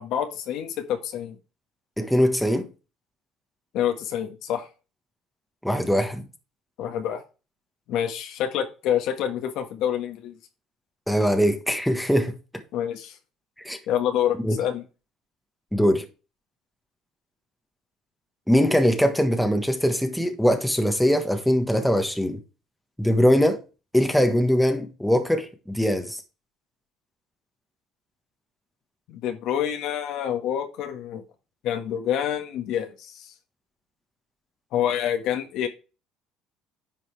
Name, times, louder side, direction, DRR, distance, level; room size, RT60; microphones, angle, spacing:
voice 1, 0.0-1.4 3.7-4.7 6.8-7.2 7.9-10.3 12.7-13.1 13.9-14.8 29.1-31.2 31.6-33.3 34.7-35.7, left 10 dB, 70° left, 1.4 m, -27 dB
voice 2, 2.0-2.7 5.6-6.2 11.1-12.3 13.6-13.8 14.4-14.6 15.7-16.0 18.5-22.4 23.0-23.6 23.9-26.2, equal, ahead, 1.2 m, -21 dB
10.0 x 5.3 x 3.3 m
cardioid pair, 110°, 0 cm